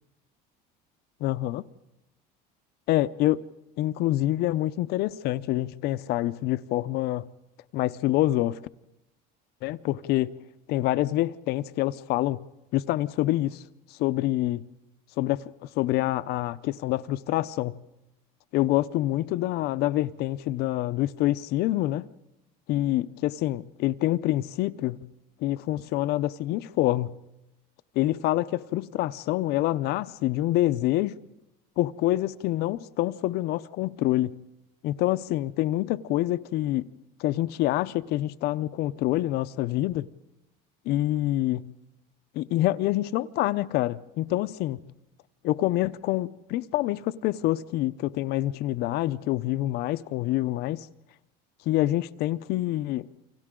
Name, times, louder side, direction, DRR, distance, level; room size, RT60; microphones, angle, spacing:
voice 1, 1.2-1.6 2.9-3.4 3.8-7.3 7.7-8.6 9.6-10.4 10.7-12.5 12.7-13.6 14.0-14.6 15.2-15.4 15.8-17.8 18.5-22.1 22.7-25.0 25.4-27.1 28.0-31.2 31.8-34.4 34.8-36.9 37.2-40.1 40.9-41.7 42.3-44.8 45.4-50.9 51.7-53.1, left 15 dB, 55° left, 0.6 m, -26 dB
29.5 x 25.0 x 3.8 m
cardioid pair, 150°, 20 cm